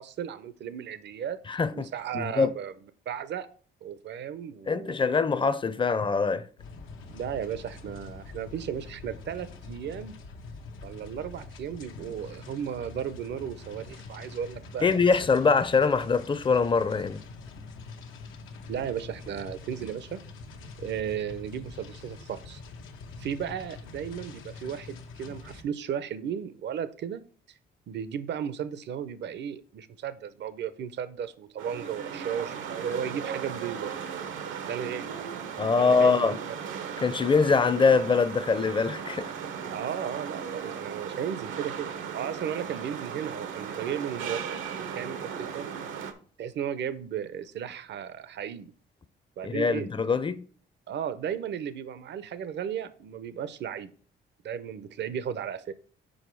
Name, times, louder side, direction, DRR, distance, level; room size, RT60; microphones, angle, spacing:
voice 1, 0.0-2.7 3.1-3.5 3.8-5.0 7.1-10.2 10.8-15.1 18.7-20.2 20.8-22.6 23.2-27.2 27.9-33.9 34.7-35.2 35.6-36.7 39.7-44.5 44.8-45.7 46.4-48.7 49.4-49.9 50.9-53.9 54.4-55.7, right 8 dB, 65° right, 0.7 m, -35 dB
voice 2, 1.5-1.9 2.1-2.5 4.7-6.4 14.8-17.2 35.6-36.4 37.0-39.3 49.4-50.4, left 4 dB, 25° left, 0.6 m, -23 dB
sound 1, 6.6-25.6, left 3 dB, 90° left, 1.0 m, -45 dB
sound 2, 31.6-46.1, right 7 dB, 80° right, 0.9 m, -37 dB
6.4 x 4.9 x 4.6 m
cardioid pair, 90°, 20 cm